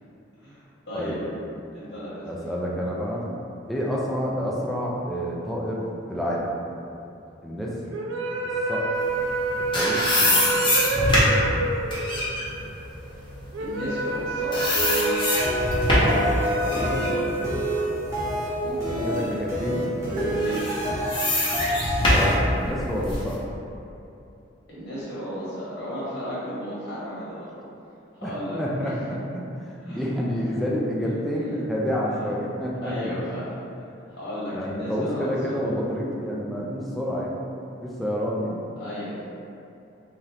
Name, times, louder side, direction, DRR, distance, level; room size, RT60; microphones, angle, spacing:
voice 1, 0.4-1.2 1.7-2.3 13.6-14.7 15.9-16.3 16.6-17.4 18.6-19.4 20.4-20.8 24.7-27.6 28.1-28.9 29.9-30.0 32.8-33.5 34.2-35.5 38.8-39.2, equal, 70° left, -12 dB, 1.4 m, -34 dB
voice 2, 2.2-3.3 3.7-6.5 7.4-7.7 8.4-8.9 9.7-10.7 16.6-17.5 19.1-19.9 22.1-23.4 28.2-28.3 28.6-33.2 34.5-37.4 37.8-38.6, equal, ahead, -5 dB, 0.4 m, -29 dB
sound 1, 7.9-18.3, right 2 dB, 85° right, 0.4 m, -28 dB
sound 2, 9.3-14.2 14.5-16.2 16.7-18.7 19.1-19.3 20.3-23.3, left 1 dB, 25° left, 0.7 m, -24 dB
sound 3, 14.7-22.4, equal, 15° right, 0.9 m, -28 dB
3.6 x 2.8 x 3.3 m, 2.8 s
head